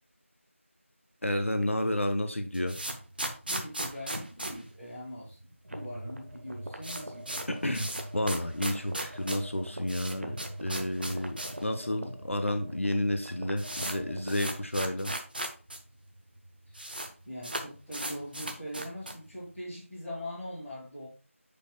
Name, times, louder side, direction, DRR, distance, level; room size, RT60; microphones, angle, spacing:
voice 1, 1.2-2.8 7.5-15.2, left 1 dB, 65° left, 0.9 m, -31 dB
sound 1, 2.3-5.5 5.8-5.9 6.1-6.2 6.5-11.7 12.0-12.1 12.8-12.9 13.1-15.8 16.1-16.2 16.4-17.1 17.4-19.3, right 1 dB, 40° right, 0.8 m, -37 dB
voice 2, 3.4-5.4 5.7-7.4 16.7-16.8 17.2-21.1, equal, 5° left, 1.6 m, -41 dB
sound 2, 5.6-14.7, right 1 dB, 60° right, 1.1 m, -43 dB
8.5 x 5.2 x 2.3 m
figure-of-eight pair, 175°, 8 cm